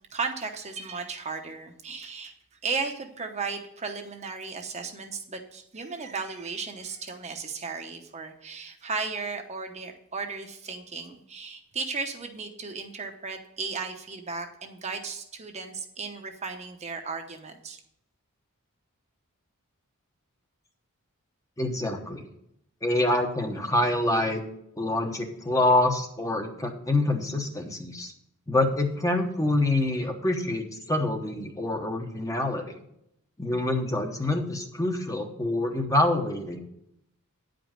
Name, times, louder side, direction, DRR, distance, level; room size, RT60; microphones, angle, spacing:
voice 1, 0.1-2.3 2.6-17.8, right 4 dB, 30° right, 4 dB, 0.9 m, -35 dB
voice 2, 21.6-22.2 22.8-24.4 24.8-28.1 28.5-32.7 33.4-36.6, left 2 dB, 15° left, 3 dB, 1.0 m, -26 dB
10.0 x 5.2 x 7.3 m, 0.77 s
head